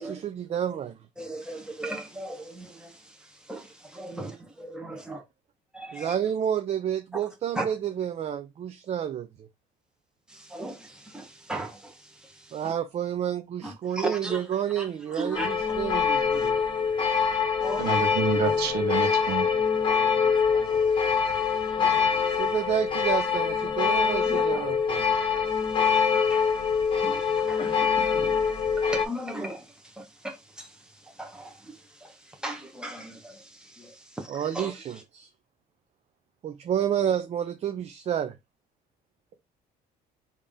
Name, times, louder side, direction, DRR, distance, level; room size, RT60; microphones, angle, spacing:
voice 1, 0.0-1.0 5.9-9.5 12.5-16.6 22.3-25.2 34.3-35.3 36.4-38.4, right 9 dB, 40° right, 0.4 m, -30 dB
voice 2, 1.2-4.3 4.6-5.2 5.7-6.1 7.5-7.7 10.3-12.7 13.6-14.5 14.8-15.5 16.3-16.5 17.6-18.0 18.3-18.6 20.9-21.0 22.1-22.4 24.2-24.6 25.5-34.9, right 1 dB, 5° right, 1.0 m, -38 dB
sound 1, 15.3-29.0, left 6 dB, 30° left, 1.0 m, -24 dB
voice 3, 17.8-19.4, right 6 dB, 75° right, 1.0 m, -28 dB
3.4 x 2.7 x 3.6 m
cardioid pair, 110°, 17 cm